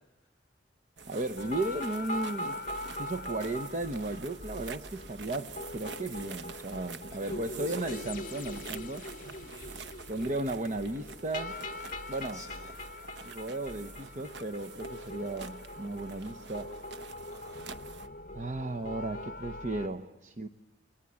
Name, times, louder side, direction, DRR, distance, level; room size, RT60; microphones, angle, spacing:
sound 1, 1.0-18.1, right 5 dB, 75° right, 1.0 m, -47 dB
voice 1, 1.1-2.6 3.0-9.1 10.1-11.6 12.1-12.4 13.2-16.7 18.3-20.5, right 2 dB, 45° right, 7 dB, 0.9 m, -35 dB
sound 2, 1.4-19.9, left 1 dB, 50° left, 1.0 m, -42 dB
voice 2, 7.1-7.9 9.3-9.7 12.3-12.8 17.3-17.7, left 1 dB, 20° right, 2 dB, 7.4 m, -52 dB
28.5 x 23.0 x 8.7 m, 0.99 s
head